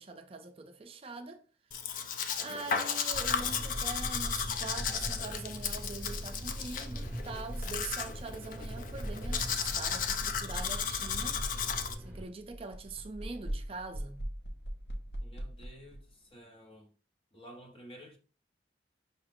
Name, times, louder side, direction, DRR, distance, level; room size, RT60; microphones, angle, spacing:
voice 1, 0.0-1.4 2.4-11.4 12.0-14.2, right 3 dB, 35° right, 0.4 m, -43 dB
Domestic sounds home sounds, 1.7-11.9, left 7 dB, 50° left, 0.4 m, -35 dB
sound 1, 3.1-12.3, equal, 10° right, 0.9 m, -40 dB
sound 2, 11.5-11.6 11.9-16.0, equal, 70° left, 0.8 m, -40 dB
voice 2, 15.2-16.9 17.3-18.2, equal, 30° left, 1.0 m, -52 dB
5.6 x 2.4 x 3.4 m
head